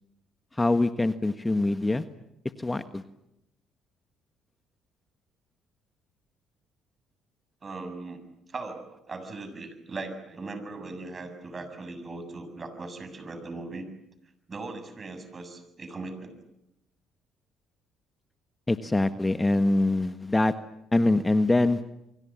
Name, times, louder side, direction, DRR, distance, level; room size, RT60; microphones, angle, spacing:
voice 1, 0.6-2.0 2.6-3.0 18.7-20.5 20.9-21.8, left 2 dB, 15° left, 10 dB, 1.5 m, -24 dB
voice 2, 7.6-8.2 8.5-13.9 14.5-16.4, right 3 dB, 35° right, 9 dB, 7.4 m, -39 dB
29.5 x 24.0 x 7.6 m, 0.83 s
hypercardioid pair, 60°, 0 cm